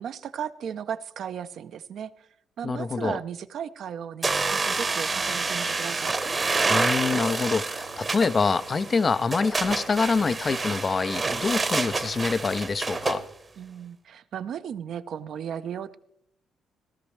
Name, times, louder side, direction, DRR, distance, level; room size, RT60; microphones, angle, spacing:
voice 1, 0.0-2.3 2.6-6.2 13.6-15.9, right 8 dB, 65° right, 0.6 m, -35 dB
voice 2, 2.6-3.2 6.7-13.2, left 4 dB, 35° left, 0.4 m, -25 dB
sound 1, 4.2-13.2, right 3 dB, 30° right, 0.9 m, -28 dB
sound 2, 4.3-13.3, right 2 dB, 85° right, 1.0 m, -50 dB
17.0 x 12.5 x 3.2 m
cardioid pair, 90°, 0 cm